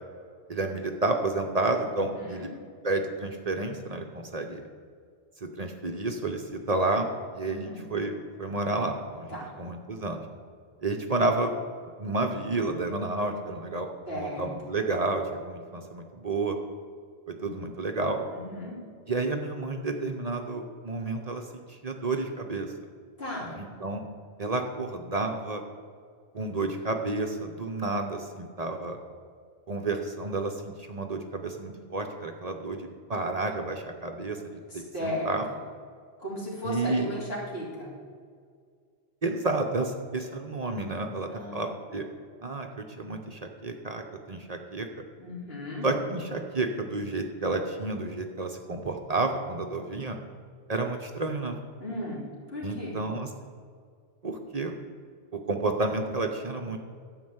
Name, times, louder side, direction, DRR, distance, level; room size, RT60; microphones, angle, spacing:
voice 1, 0.5-2.5 2.8-4.6 5.4-8.1 8.4-10.2 10.8-11.5 12.0-13.9 14.1-16.6 17.3-18.2 19.1-22.7 23.5-24.0 24.4-25.6 26.3-29.0 29.7-34.6 35.0-35.4 36.6-37.1 39.2-42.1 42.4-44.9 45.8-50.2 50.7-51.6 52.6-53.3 54.2-54.8 55.3-56.8, right 2 dB, 40° right, 4 dB, 0.9 m, -30 dB
voice 2, 1.9-2.5 7.4-7.8 9.3-9.5 14.1-14.5 17.4-17.5 18.3-18.8 23.2-23.5 34.7-35.3 36.2-37.9 41.3-41.6 45.2-45.9 51.8-52.2 52.5-53.0, left 1 dB, 75° left, -6 dB, 3.6 m, -36 dB
11.0 x 5.5 x 7.9 m, 2.1 s
omnidirectional pair, 1.0 m